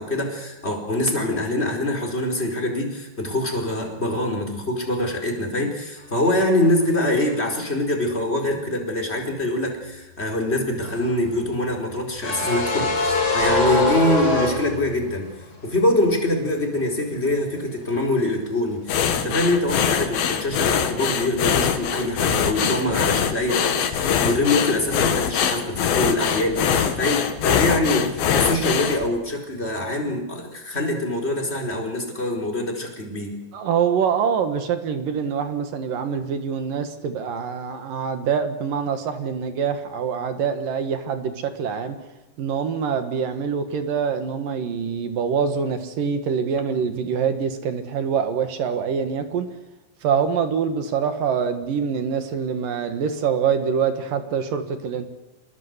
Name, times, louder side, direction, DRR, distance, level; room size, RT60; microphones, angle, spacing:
voice 1, 0.0-15.3 15.6-33.4, left 1 dB, 15° left, 1 dB, 4.4 m, -24 dB
sound 1, 10.8-15.3 15.5-15.7 17.8-18.2 18.5-18.7, left 2 dB, 35° left, 5.9 m, -24 dB
sound 2, 18.9-29.1, left 8 dB, 65° left, 3.3 m, -23 dB
voice 2, 33.5-42.0 42.4-49.5 50.0-55.1, right 7 dB, 60° right, 8 dB, 3.0 m, -25 dB
26.5 x 19.5 x 8.2 m, 1.0 s
omnidirectional pair, 4.9 m